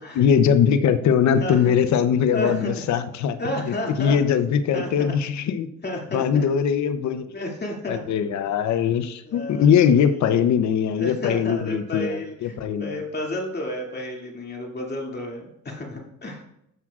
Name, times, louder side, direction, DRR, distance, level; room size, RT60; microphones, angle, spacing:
voice 1, 0.1-3.4 3.6-5.7 6.1-7.2 7.9-13.0, left 8 dB, 65° left, 10 dB, 0.7 m, -21 dB
voice 2, 1.4-1.7 2.3-2.7 3.4-4.1 4.7-5.1 5.8-6.5 7.3-8.0 9.2-10.3 10.9-16.4, left 1 dB, 35° left, -1 dB, 2.4 m, -31 dB
12.5 x 7.3 x 2.4 m, 0.77 s
cardioid pair, 90°, 30 cm